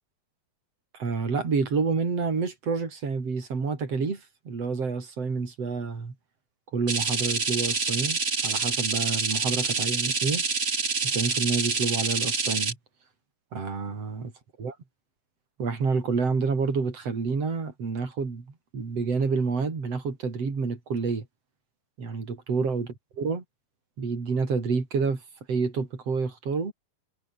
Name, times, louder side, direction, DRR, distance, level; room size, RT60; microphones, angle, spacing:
voice 1, 0.9-6.1 6.7-10.4 11.0-12.8 13.5-14.3 14.6-14.8 15.6-21.3 22.0-22.9 23.2-23.4 24.0-25.2 25.5-26.7, right 4 dB, 40° right, 5.4 m, -28 dB
sound 1, 6.9-12.7, right 4 dB, 60° right, 0.6 m, -27 dB
omnidirectional pair, 4.6 m